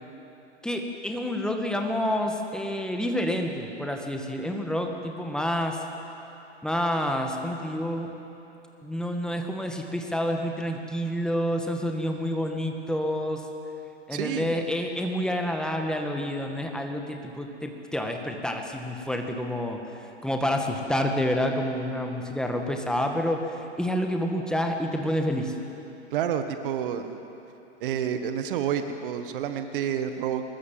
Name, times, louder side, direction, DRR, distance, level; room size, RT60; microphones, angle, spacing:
voice 1, 0.6-5.8 6.6-8.1 8.8-13.5 14.1-19.8 20.2-25.5, equal, ahead, 3 dB, 1.9 m, -28 dB
voice 2, 14.1-14.5 26.1-27.2 27.8-30.4, right 9 dB, 45° right, 8 dB, 1.6 m, -29 dB
24.0 x 21.5 x 7.7 m, 2.9 s
figure-of-eight pair, 110°, 36 cm